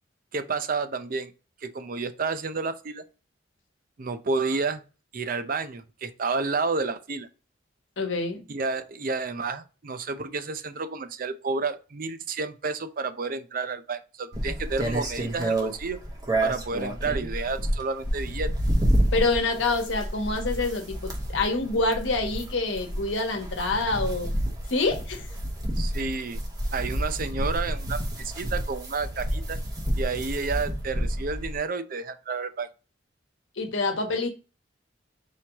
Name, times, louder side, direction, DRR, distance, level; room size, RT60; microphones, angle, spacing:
voice 1, 0.3-1.3 1.6-3.0 4.0-4.8 5.1-7.3 8.5-16.0 16.4-18.5 25.8-26.4 26.7-29.6 30.0-32.7, right 4 dB, 45° right, 0.5 m, -30 dB
voice 2, 8.0-8.4 19.1-24.3 24.7-25.2 33.6-34.3, left 3 dB, 80° left, 1.1 m, -26 dB
sound 1, 14.3-31.6, right 1 dB, 20° right, 1.0 m, -29 dB
4.4 x 3.1 x 3.4 m
head